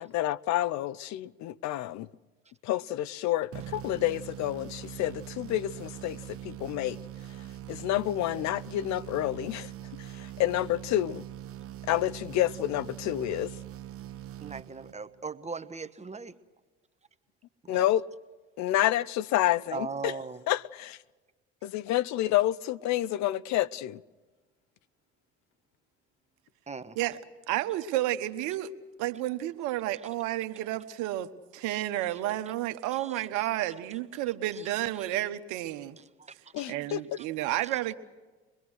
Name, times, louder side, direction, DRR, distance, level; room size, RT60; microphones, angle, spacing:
voice 1, 0.0-2.1 2.6-7.0 7.7-9.7 10.0-11.2 11.9-13.5 17.7-18.0 18.6-20.2 20.5-21.0 21.6-24.0 36.5-37.0, left 14 dB, 65° left, 0.7 m, -29 dB
sound 1, 3.5-15.2, right 12 dB, 45° right, 0.9 m, -42 dB
voice 2, 14.4-16.3 17.6-17.9 19.7-20.4 26.7-27.0 29.9-30.0 32.9-33.5 34.5-35.1 36.2-36.7 37.2-37.3 37.7-38.0, right 5 dB, 20° right, 1.3 m, -40 dB
voice 3, 27.5-28.7 29.0-36.0 36.7-37.9, right 14 dB, 70° right, 1.2 m, -31 dB
24.5 x 21.0 x 6.4 m
hypercardioid pair, 65°, 31 cm